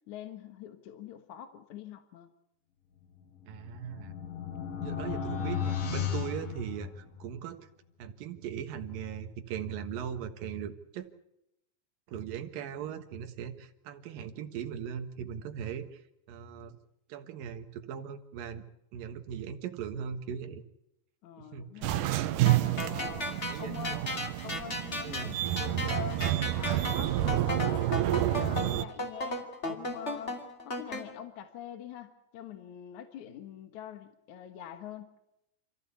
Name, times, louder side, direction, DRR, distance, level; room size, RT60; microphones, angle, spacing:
voice 1, 0.1-2.3 6.4-6.6 21.2-22.2 22.8-24.0 24.4-35.2, left 10 dB, 60° left, 8 dB, 2.1 m, -44 dB
sound 1, 3.4-7.3, left 8 dB, 90° left, 4.8 m, -35 dB
voice 2, 3.5-4.1 4.8-7.7 8.0-11.1 12.1-16.0 16.3-16.8 17.1-18.6 18.9-20.6 21.5-21.9 23.5-23.8 25.0-25.3, right 8 dB, 65° right, 7 dB, 2.8 m, -39 dB
sound 2, 21.8-28.8, right 14 dB, 80° right, 1.9 m, -29 dB
sound 3, 22.5-31.0, left 2 dB, 20° left, 1.9 m, -35 dB
27.5 x 15.0 x 8.4 m, 0.82 s
omnidirectional pair, 5.0 m